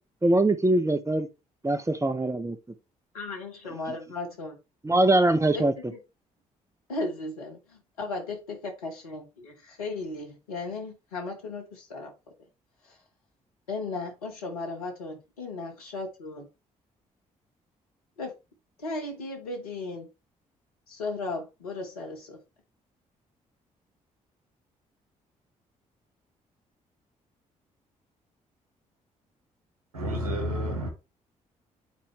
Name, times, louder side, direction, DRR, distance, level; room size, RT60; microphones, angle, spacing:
voice 1, 0.2-1.3 1.6-2.6 4.8-5.7, right 2 dB, 15° right, 1.2 m, -22 dB
voice 2, 3.1-4.6 5.5-5.6 5.9-6.0 6.9-12.1 13.7-16.5 18.2-18.3 18.8-20.1 20.9-22.4, left 3 dB, 85° left, 1.3 m, -36 dB
voice 3, 29.9-30.9, equal, 85° right, 1.3 m, -30 dB
9.3 x 4.4 x 3.3 m
figure-of-eight pair, 40°, 18 cm